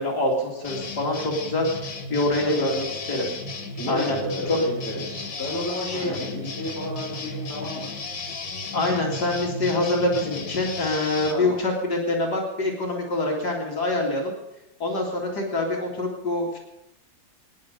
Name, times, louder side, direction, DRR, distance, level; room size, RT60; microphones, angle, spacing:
voice 1, 0.0-1.6 2.1-3.3 3.9-4.2 4.5-4.6 5.9-6.1 8.7-14.3 14.8-16.6, left 2 dB, 60° left, -1 dB, 2.9 m, -25 dB
sound 1, 0.6-11.3, left 3 dB, 85° left, 2.4 m, -34 dB
voice 2, 2.4-2.9 3.7-7.9 11.3-11.6, left 1 dB, 10° left, -5 dB, 4.9 m, -32 dB
24.0 x 10.5 x 5.1 m, 0.92 s
omnidirectional pair, 2.0 m